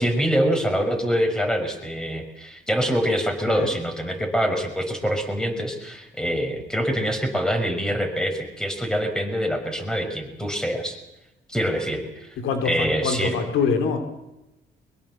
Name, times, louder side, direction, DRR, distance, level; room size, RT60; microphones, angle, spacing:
voice 1, 0.0-11.0 11.5-12.4 12.6-13.4, equal, 5° left, 5 dB, 5.7 m, -25 dB
voice 2, 12.4-14.0, left 5 dB, 85° left, 7 dB, 3.0 m, -24 dB
23.0 x 22.0 x 7.6 m, 0.96 s
cardioid pair, 90°, 20 cm